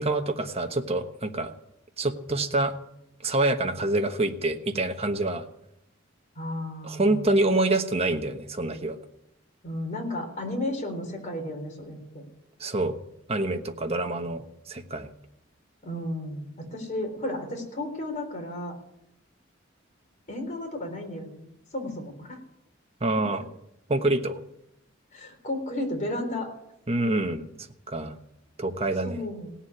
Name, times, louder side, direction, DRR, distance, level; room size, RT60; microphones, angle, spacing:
voice 1, 0.0-1.5 2.0-2.7 3.2-5.4 6.8-9.0 12.6-13.0 13.3-14.4 14.7-15.1 23.0-23.4 23.9-24.4 26.9-27.4 27.9-28.1 28.6-29.2, right 2 dB, 30° right, 5 dB, 1.2 m, -26 dB
voice 2, 6.4-7.2 9.6-12.2 15.8-18.7 20.3-21.4 21.7-22.4 23.2-23.4 25.1-26.5 27.3-27.4 29.0-29.6, left 1 dB, 40° left, 2 dB, 3.9 m, -33 dB
17.5 x 7.3 x 9.6 m, 0.80 s
head